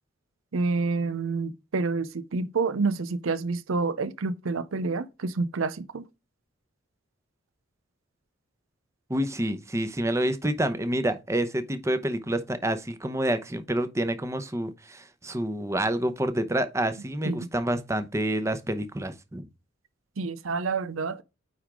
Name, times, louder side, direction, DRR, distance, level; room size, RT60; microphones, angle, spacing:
voice 1, 0.5-6.1 17.2-17.5 20.2-21.2, right 4 dB, 85° right, 0.6 m, -28 dB
voice 2, 9.1-19.5, right 1 dB, 15° right, 0.8 m, -28 dB
9.5 x 3.5 x 3.7 m
head